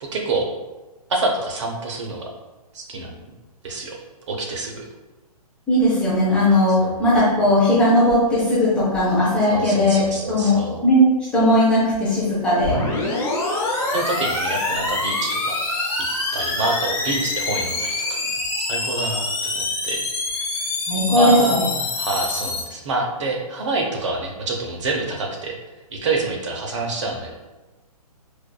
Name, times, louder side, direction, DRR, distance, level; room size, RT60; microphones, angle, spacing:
voice 1, 0.0-0.5 1.1-2.3 2.7-3.2 3.6-4.0 4.3-4.8 6.8-7.0 9.5-10.8 13.9-15.6 16.3-18.2 18.6-20.0 21.1-25.6 25.9-27.3, right 2 dB, 50° right, 1 dB, 0.7 m, -26 dB
voice 2, 5.7-10.0 10.3-12.8 20.9-21.6, left 1 dB, 5° left, -10 dB, 0.4 m, -18 dB
sound 1, 12.6-22.6, left 2 dB, 25° left, 0.7 m, -25 dB
4.5 x 2.3 x 2.2 m, 1.1 s
hypercardioid pair, 155°, 20 cm